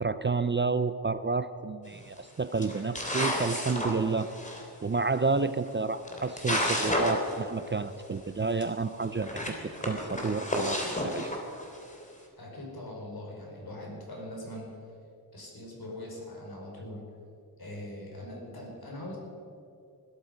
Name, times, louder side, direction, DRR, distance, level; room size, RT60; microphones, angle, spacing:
voice 1, 0.0-4.3 4.8-11.3, right 4 dB, 30° right, 13 dB, 0.5 m, -30 dB
sound 1, 1.9-2.2 2.6-4.6 5.7-5.8 6.0-7.4 7.7-7.8 8.0-8.1 8.6-8.7 9.2-11.9, left 1 dB, 20° left, 3.0 m, -31 dB
voice 2, 12.4-14.8 15.3-17.0 17.6-19.2, left 1 dB, 65° left, -2 dB, 5.0 m, -41 dB
20.5 x 13.0 x 5.3 m, 2.6 s
wide cardioid pair, 95°, 40 cm